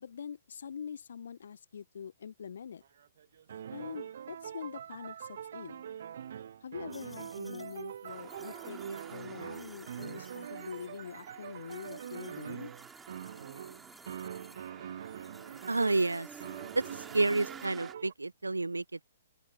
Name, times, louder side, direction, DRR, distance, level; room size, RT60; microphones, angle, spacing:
voice 1, 0.0-2.8 3.7-5.8 6.6-12.7, left 7 dB, 60° left, 0.6 m, -44 dB
sound 1, 2.8-16.0 16.4-18.1, right 9 dB, 55° right, 1.7 m, -44 dB
sound 2, 6.9-14.7 15.0-17.7, left 1 dB, ahead, 4.2 m, -59 dB
sound 3, 8.1-17.9, right 8 dB, 15° right, 3.1 m, -51 dB
voice 2, 15.7-16.3 16.7-19.1, right 2 dB, 80° right, 0.5 m, -30 dB
open air
figure-of-eight pair, 120°, 0 cm